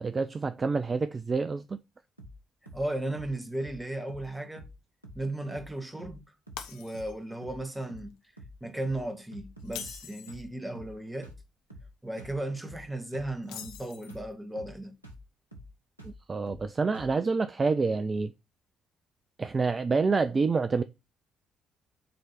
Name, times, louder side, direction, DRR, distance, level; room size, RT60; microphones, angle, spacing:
voice 1, 0.0-1.8 16.0-18.3 19.4-20.8, right 4 dB, 30° right, 0.4 m, -27 dB
sound 1, 2.2-2.4 2.7-2.9 3.1-3.3 3.6-3.8 4.1-4.3 4.6-4.8 5.0-5.2 5.5-5.7 6.0-6.2 6.5-6.7 6.9-7.2 7.4-7.6 7.9-8.1 8.4-8.6 8.8-9.1 9.3-10.0 10.3-10.5 10.7-11.0 11.2-11.4 11.7-11.9 12.2-12.4 12.6-12.9 13.1-13.3 13.6-13.8 14.1-14.3 14.6-14.8 15.0-15.2 15.5-15.7 16.0-16.2 16.5-16.7 16.9-17.2, equal, 90° right, 0.8 m, -48 dB
voice 2, 2.7-4.7 5.1-6.2 6.7-8.2 8.6-11.3 12.0-14.9, right 1 dB, 10° right, 1.5 m, -35 dB
Shatter, 6.6-7.4 7.8-8.0 9.6-10.5 13.4-14.3, left 9 dB, 65° left, 0.7 m, -43 dB
7.7 x 3.3 x 4.2 m
figure-of-eight pair, 45°, 0 cm